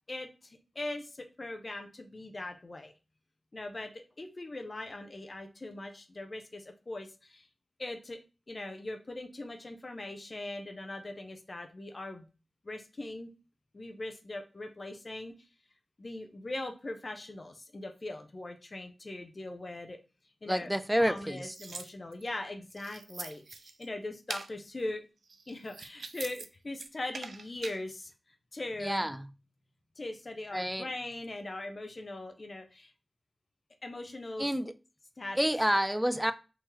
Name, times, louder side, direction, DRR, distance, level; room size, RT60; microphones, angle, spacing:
voice 1, 0.1-2.9 3.5-3.9 4.2-7.5 7.8-8.2 8.5-12.3 12.6-13.3 13.7-15.5 16.0-20.0 20.4-20.7 21.0-25.0 25.5-28.1 28.5-29.1 30.0-32.9 33.8-34.5 35.2-35.5, left 2 dB, 50° left, 0.6 m, -40 dB
voice 2, 20.5-21.5 28.8-29.3 30.5-30.9 34.4-34.7 35.4-36.3, equal, 5° right, 0.4 m, -29 dB
sound 1, 21.0-22.3 22.7-23.9 24.3-24.5 25.2-26.5 26.7-27.8, right 4 dB, 85° right, 0.3 m, -43 dB
3.6 x 2.9 x 3.0 m
cardioid pair, 50°, 0 cm